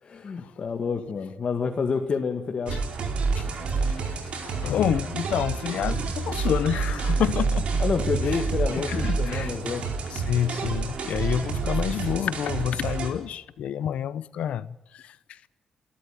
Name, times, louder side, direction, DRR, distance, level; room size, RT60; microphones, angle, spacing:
voice 1, 0.0-2.8 7.8-9.8, left 5 dB, 50° left, 2.0 m, -28 dB
sound 1, 2.7-13.1, right 4 dB, 70° right, 4.5 m, -28 dB
voice 2, 3.8-7.8 8.3-8.4 8.7-9.6 10.1-15.5, left 10 dB, 85° left, 0.8 m, -29 dB
28.5 x 12.5 x 9.3 m
cardioid pair, 90°, 2 cm